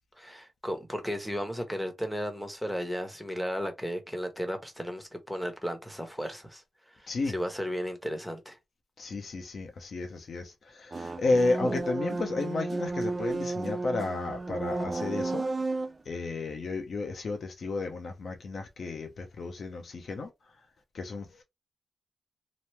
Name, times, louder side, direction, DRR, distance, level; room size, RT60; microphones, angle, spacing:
voice 1, 0.2-6.6 7.0-8.6, equal, ahead, 1.0 m, -34 dB
voice 2, 9.0-15.4 16.1-20.3 20.9-21.4, left 3 dB, 65° left, 0.7 m, -32 dB
sound 1, 10.9-16.0, right 3 dB, 30° right, 0.4 m, -33 dB
3.0 x 2.0 x 3.2 m
cardioid pair, 60°, 0 cm